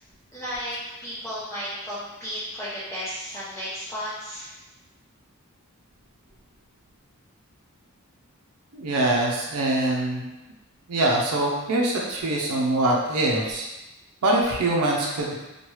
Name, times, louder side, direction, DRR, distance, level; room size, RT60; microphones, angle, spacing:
voice 1, 0.3-4.5, equal, 10° left, -11 dB, 0.5 m, -34 dB
voice 2, 8.7-10.3 10.9-13.6 14.2-15.4, right 1 dB, 90° right, -2 dB, 0.5 m, -23 dB
3.1 x 2.2 x 3.0 m, 1.0 s
head